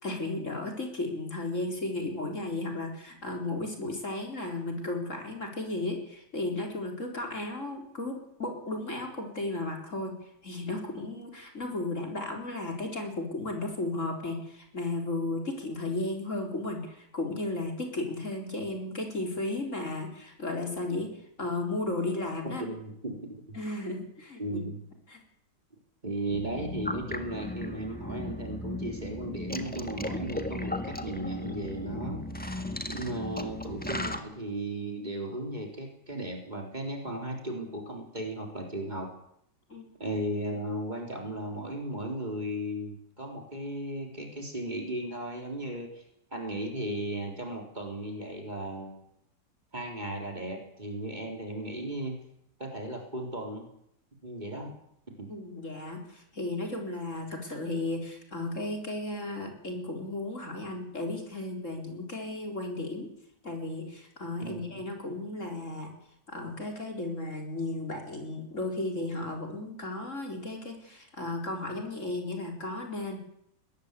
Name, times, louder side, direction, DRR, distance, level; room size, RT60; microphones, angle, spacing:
voice 1, 0.0-22.6 23.5-24.6 25.1-25.2 39.7-39.9 55.3-63.1 63.4-65.9 66.3-73.2, left 2 dB, 40° left, 2 dB, 4.5 m, -34 dB
voice 2, 22.6-23.6 24.4-24.8 26.0-32.3 32.9-39.1 40.0-46.0 46.3-49.0 49.7-52.2 52.6-53.7 54.2-54.8 55.1-55.3 64.4-64.8, right 1 dB, 25° right, 2 dB, 4.1 m, -36 dB
sound 1, 26.3-34.2, left 1 dB, 5° left, 1.7 m, -36 dB
22.0 x 19.0 x 8.4 m, 0.74 s
omnidirectional pair, 1.9 m